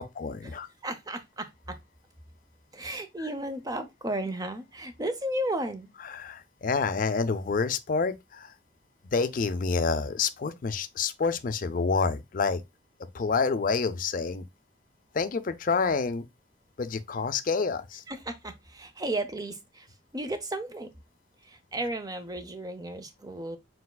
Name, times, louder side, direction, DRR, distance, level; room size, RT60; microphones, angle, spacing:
voice 1, 0.0-0.7 6.1-8.5 9.0-12.6 13.1-14.4 15.1-16.3 16.8-18.0, left 4 dB, 45° left, 0.4 m, -28 dB
voice 2, 0.8-1.8 2.7-5.9 18.1-19.9 20.1-20.9 21.4-23.6, right 1 dB, 20° right, 0.6 m, -34 dB
4.6 x 4.0 x 2.2 m
head